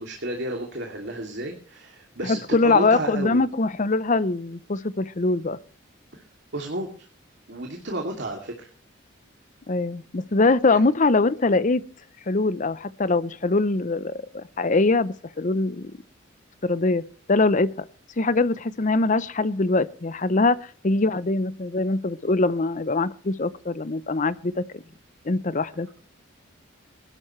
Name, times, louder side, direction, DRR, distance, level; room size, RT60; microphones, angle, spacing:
voice 1, 0.0-3.4 6.1-6.2 6.5-7.1 7.5-8.7 10.7-10.8, right 1 dB, 60° right, 2 dB, 2.7 m, -32 dB
voice 2, 2.2-5.6 9.7-11.8 12.3-15.9 16.6-17.0 17.3-17.7 18.2-24.8 25.2-25.9, left 3 dB, 40° left, 16 dB, 0.7 m, -23 dB
22.0 x 12.0 x 3.2 m, 0.41 s
head